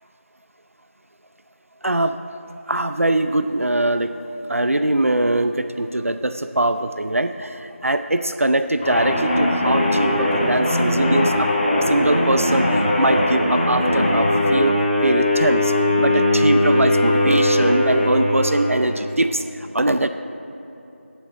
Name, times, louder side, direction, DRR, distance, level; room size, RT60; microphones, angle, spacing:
voice 1, 1.8-2.2 2.7-4.1 4.5-11.5 11.9-15.7 16.0-20.1, right 1 dB, 80° right, 9 dB, 0.5 m, -22 dB
sound 1, 8.8-19.0, left 1 dB, 5° right, 1.5 m, -20 dB
15.0 x 7.7 x 4.1 m, 3.0 s
figure-of-eight pair, 180°, 7 cm